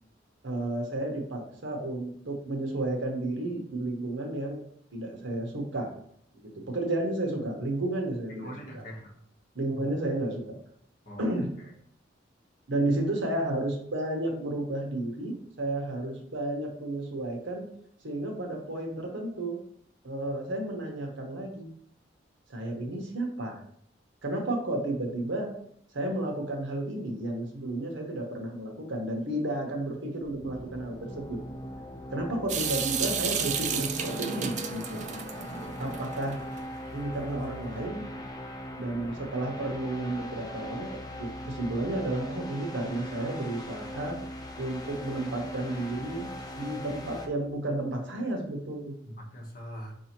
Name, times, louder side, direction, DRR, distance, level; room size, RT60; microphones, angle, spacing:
voice 1, 0.4-4.6 4.9-5.9 6.3-8.8 9.5-10.4 11.2-11.5 12.7-17.7 18.0-19.6 20.0-21.7 22.5-23.6 24.2-25.5 25.9-31.4 32.1-35.0 35.8-36.4 36.9-38.0 38.8-40.9 41.2-44.2 44.6-46.3 46.6-49.0, right 1 dB, 75° right, 2 dB, 0.9 m, -32 dB
voice 2, 8.3-9.1 11.0-11.7 49.0-49.9, equal, 50° left, -2 dB, 1.1 m, -43 dB
sound 1, 30.2-47.3, equal, 20° left, 0.5 m, -40 dB
Water tap faucet / Sink (filling or washing) / Drip, 32.5-36.6, right 7 dB, 40° right, 0.3 m, -32 dB
5.0 x 2.7 x 2.9 m, 0.66 s
head